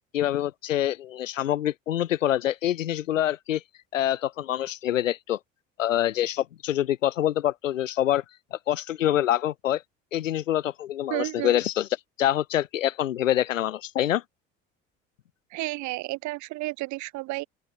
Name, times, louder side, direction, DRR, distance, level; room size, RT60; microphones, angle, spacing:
voice 1, 0.1-3.6 3.9-5.4 5.8-8.2 8.5-9.8 10.1-11.9 12.2-14.2, left 12 dB, 80° left, 0.6 m, -26 dB
voice 2, 11.1-11.6 15.5-17.4, right 20 dB, 50° right, 1.0 m, -32 dB
open air
figure-of-eight pair, 55°, 38 cm